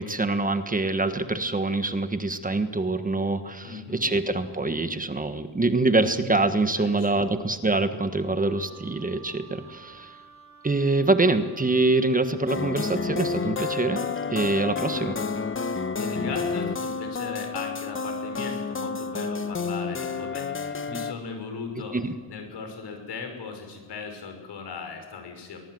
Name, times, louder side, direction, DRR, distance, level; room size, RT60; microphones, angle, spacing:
voice 1, 0.0-10.2 10.6-14.0 14.3-15.2 21.9-22.1, right 2 dB, 20° right, 9 dB, 1.4 m, -25 dB
voice 2, 3.6-4.1 6.7-7.3 16.0-22.0 22.3-25.6, left 4 dB, 75° left, 5 dB, 5.8 m, -37 dB
Wind instrument woodwind instrument, 8.3-20.4, right 6 dB, 40° right, 3.5 m, -51 dB
sound 1, 12.5-21.1, left 4 dB, 30° left, 1.2 m, -30 dB
23.0 x 20.0 x 7.9 m, 1.5 s
cardioid pair, 120°, 41 cm